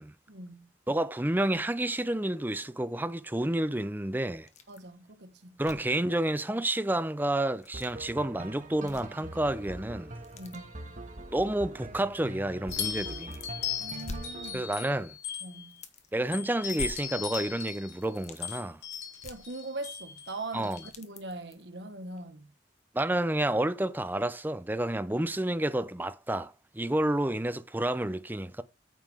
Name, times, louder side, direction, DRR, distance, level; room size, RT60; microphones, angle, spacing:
voice 1, 0.3-0.7 4.7-5.6 10.3-10.7 13.8-14.7 15.4-15.8 19.2-22.5, right 2 dB, 75° right, 1.4 m, -41 dB
voice 2, 0.9-4.5 5.6-10.1 11.3-13.4 14.5-15.1 16.1-18.8 20.5-20.8 22.9-28.6, right 1 dB, 10° right, 0.6 m, -30 dB
sound 1, 4.5-4.9 5.2-5.3 5.6-6.0 7.5-7.9 8.7-9.4 9.7-10.6 11.5-11.6 12.6-13.5 13.8-14.9 15.2-15.3 15.7-16.3 16.7-17.6 17.9-18.4 19.2-20.1 20.4-21.7 22.2-22.3 22.8-22.9, left 2 dB, 40° left, 1.3 m, -46 dB
sound 2, 7.7-14.5, right 1 dB, 45° right, 1.5 m, -43 dB
sound 3, 12.7-15.8 16.3-20.9, left 8 dB, 75° left, 3.4 m, -38 dB
9.1 x 7.2 x 3.6 m
head